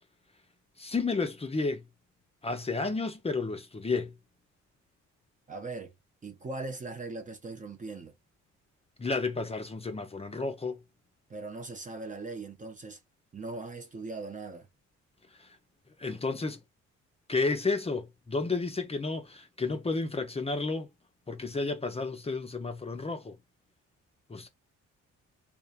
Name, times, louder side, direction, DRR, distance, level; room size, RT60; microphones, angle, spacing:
voice 1, 0.8-1.8 2.4-4.1 9.0-10.8 15.4-15.5 16.0-16.6 17.3-20.9 21.3-23.4 24.3-24.5, left 3 dB, 20° left, 0.6 m, -31 dB
voice 2, 5.5-5.9 6.2-8.1 11.3-13.0 13.3-14.7, right 3 dB, 25° right, 0.5 m, -40 dB
2.7 x 2.1 x 2.4 m
cardioid pair, 90°, 30 cm